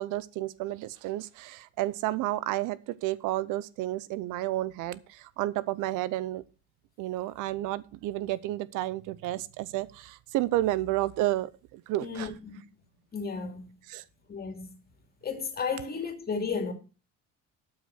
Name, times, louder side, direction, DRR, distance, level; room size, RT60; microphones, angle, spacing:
voice 1, 0.0-6.4 7.0-12.3 13.9-14.0, right 16 dB, 80° right, 0.7 m, -31 dB
voice 2, 12.0-12.6 13.1-13.7 14.3-14.7 15.2-16.7, left 5 dB, 30° left, 2.5 m, -33 dB
12.5 x 5.6 x 5.8 m
cardioid pair, 130°, 31 cm